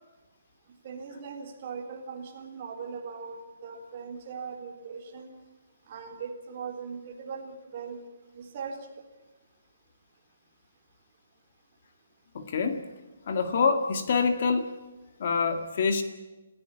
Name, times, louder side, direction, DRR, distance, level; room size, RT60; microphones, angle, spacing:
voice 1, 0.8-5.3 5.9-8.0 8.3-8.9, right 5 dB, 30° right, 3 dB, 3.7 m, -39 dB
voice 2, 12.3-12.8 13.3-14.7 15.2-16.0, left 5 dB, 40° left, 8 dB, 1.9 m, -26 dB
27.5 x 16.0 x 9.0 m, 1.1 s
hypercardioid pair, 175°, 0 cm